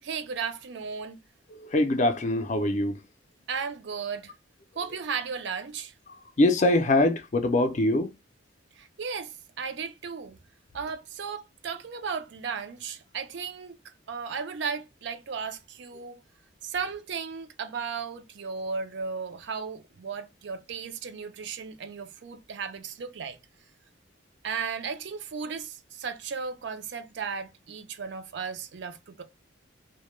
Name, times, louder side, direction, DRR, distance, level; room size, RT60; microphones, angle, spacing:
voice 1, 0.0-1.2 3.5-4.3 4.8-5.9 8.8-10.4 10.7-16.2 16.6-23.4 24.4-29.2, right 5 dB, 60° right, 0.4 m, -35 dB
voice 2, 1.6-3.0 6.4-8.1, left 1 dB, 35° left, 0.4 m, -23 dB
2.1 x 2.1 x 3.0 m
head